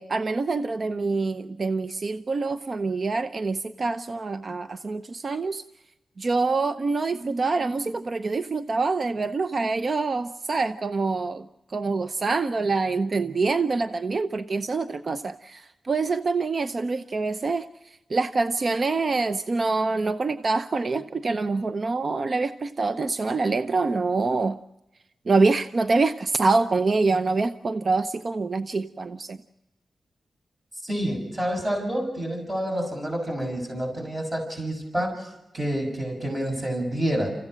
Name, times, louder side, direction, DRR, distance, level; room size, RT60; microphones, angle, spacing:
voice 1, 0.0-5.6 6.2-24.6 25.3-29.4, right 3 dB, 55° right, 11 dB, 0.7 m, -25 dB
voice 2, 30.8-37.3, right 1 dB, 25° right, 2 dB, 6.4 m, -28 dB
28.5 x 15.5 x 6.3 m, 0.95 s
cardioid pair, 60°, 0 cm